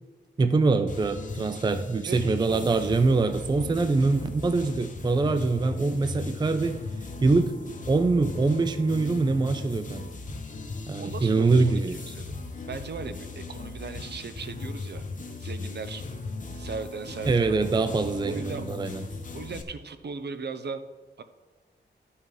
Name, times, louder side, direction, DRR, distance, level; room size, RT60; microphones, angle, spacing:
voice 1, 0.4-6.8 7.2-7.6 7.9-10.1 10.9-12.0 17.3-19.0, right 3 dB, 25° right, 9 dB, 0.4 m, -24 dB
sound 1, 0.9-19.6, left 3 dB, 40° left, 0.9 m, -37 dB
voice 2, 2.1-2.8 11.0-12.3 12.7-15.0 15.4-16.0 16.5-17.5 18.2-18.7 19.3-20.8 21.2-21.3, right 5 dB, 60° right, 10 dB, 0.7 m, -37 dB
12.0 x 5.6 x 4.8 m, 1.3 s
wide cardioid pair, 120°, 19 cm